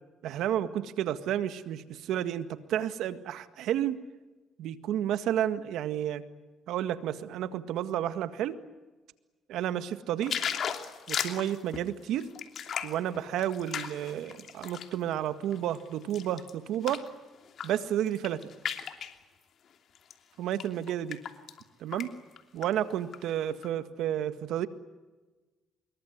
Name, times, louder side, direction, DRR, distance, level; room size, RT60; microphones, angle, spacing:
voice 1, 0.2-4.0 4.6-6.2 6.7-8.6 9.5-10.4 11.1-12.3 12.8-17.0 17.6-18.5 20.4-21.2 21.8-22.1 22.5-24.7, right 11 dB, 80° right, 11 dB, 1.8 m, -31 dB
sound 1, 10.2-15.0 15.4-17.1 17.5-17.8 18.1-19.2 19.9-20.1 20.5-21.6 21.9-22.1 22.4-23.2 23.6-23.7, left 8 dB, 60° left, 2.9 m, -36 dB
25.5 x 22.5 x 9.5 m, 1.2 s
supercardioid pair, 75°, 0 cm